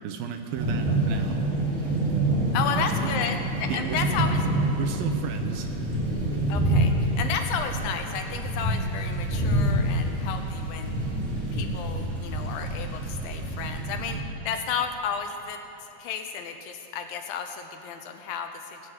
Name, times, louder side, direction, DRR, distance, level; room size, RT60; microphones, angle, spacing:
voice 1, 0.0-1.4 2.5-3.1 3.7-4.2 4.8-5.7, right 8 dB, 80° right, 5 dB, 2.4 m, -34 dB
sound 1, 0.5-14.2, right 1 dB, 20° right, 3.1 m, -27 dB
voice 2, 2.5-4.4 6.5-10.9 11.5-14.2 14.5-15.6 16.0-18.8, left 7 dB, 75° left, 6 dB, 2.4 m, -32 dB
22.5 x 7.7 x 8.0 m, 2.9 s
omnidirectional pair, 4.6 m